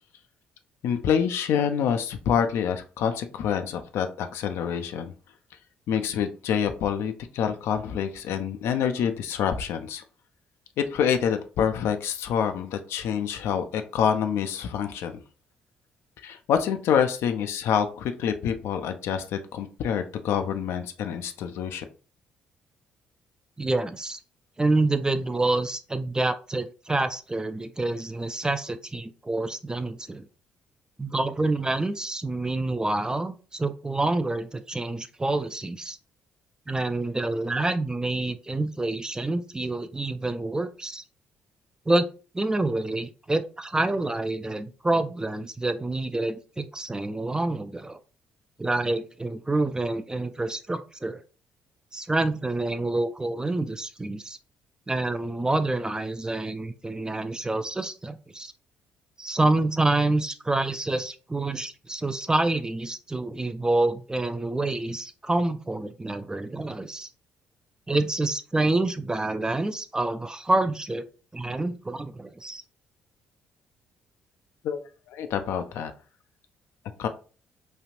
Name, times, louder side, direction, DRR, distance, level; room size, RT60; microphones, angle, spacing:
voice 1, 0.8-5.1 5.9-10.0 10.8-15.2 16.2-21.8 74.6-74.8 75.1-75.9 77.0-77.1, left 8 dB, 65° left, 8 dB, 0.4 m, -27 dB
voice 2, 23.6-24.2 24.6-30.2 31.0-36.0 36.7-41.0 41.9-42.1 42.3-48.0 48.6-51.2 51.9-54.4 54.9-58.5 59.2-67.1 67.9-71.1 71.3-72.6, right 2 dB, 15° right, 10 dB, 0.3 m, -27 dB
3.2 x 2.4 x 2.6 m, 0.36 s
hypercardioid pair, 45°, 5 cm